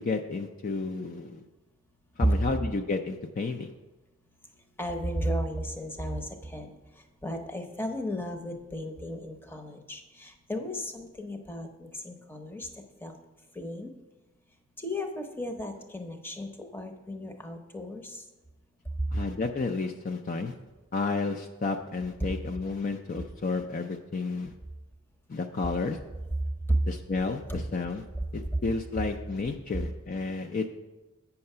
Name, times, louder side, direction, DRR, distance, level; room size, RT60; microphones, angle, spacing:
voice 1, 0.0-1.4 2.2-3.7 19.1-20.5 20.9-24.5 25.3-26.0 26.9-28.0 28.3-30.7, left 3 dB, 40° left, 5 dB, 0.4 m, -31 dB
voice 2, 4.8-6.8 7.2-12.7 13.0-13.2 13.5-13.9 14.8-18.2 28.5-28.6, left 1 dB, 10° left, 5 dB, 0.7 m, -35 dB
8.6 x 5.8 x 5.5 m, 1.1 s
head